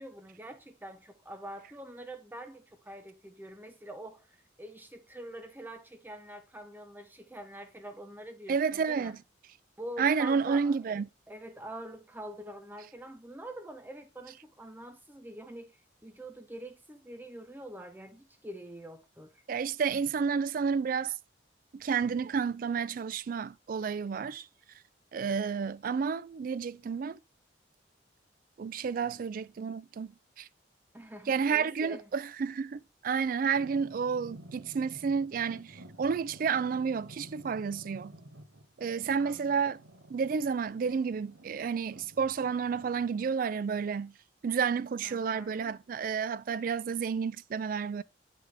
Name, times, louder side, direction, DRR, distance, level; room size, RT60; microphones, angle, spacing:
voice 1, 0.0-9.1 9.8-19.4 29.0-29.2 30.9-32.1 39.2-39.6 45.0-45.8, right 1 dB, 10° right, 0.7 m, -45 dB
voice 2, 8.5-9.2 10.0-11.1 19.5-21.2 21.7-24.5 25.1-27.2 28.6-30.5 31.3-38.1 38.8-39.8 40.1-44.1 44.4-48.0, right 6 dB, 45° right, 0.3 m, -31 dB
sound 1, 33.5-43.3, right 1 dB, 80° right, 1.1 m, -52 dB
8.2 x 5.7 x 3.3 m
head